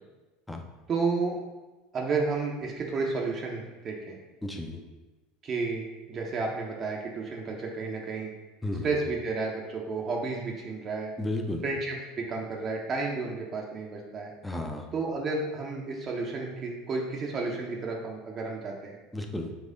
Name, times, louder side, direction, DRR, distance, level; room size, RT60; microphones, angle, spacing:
voice 1, 0.9-1.4 1.9-4.2 5.4-8.3 8.8-11.1 11.6-14.3 14.9-19.0, right 4 dB, 40° right, -1 dB, 0.7 m, -32 dB
voice 2, 4.4-4.8 8.6-9.0 11.2-11.7 14.4-14.8 19.1-19.5, left 1 dB, 5° left, 3 dB, 0.6 m, -33 dB
4.2 x 2.4 x 3.7 m, 1.1 s
hypercardioid pair, 80°, 0 cm